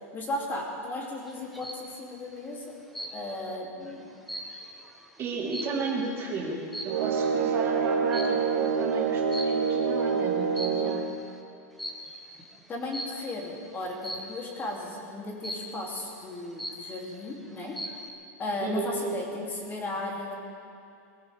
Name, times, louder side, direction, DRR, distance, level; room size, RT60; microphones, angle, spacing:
voice 1, 0.1-2.7 3.1-4.1 12.7-17.8 18.4-20.4, left 2 dB, 20° left, -2 dB, 3.1 m, -35 dB
sound 1, 1.3-1.9 2.9-3.5 3.9-6.1 6.7-7.1 8.1-8.5 9.3-9.9 10.4-11.1 11.8-12.2 12.9-13.3 14.0-14.5 15.4-15.9 16.3-16.4 16.6-17.2 17.6-18.1, equal, ahead, 1.3 m, -39 dB
voice 2, 5.2-11.0 18.6-19.0, right 4 dB, 30° right, -4 dB, 3.8 m, -34 dB
sound 2, 6.9-11.1, right 5 dB, 80° right, 1.7 m, -26 dB
23.5 x 15.0 x 3.6 m, 2.5 s
supercardioid pair, 140°, 9 cm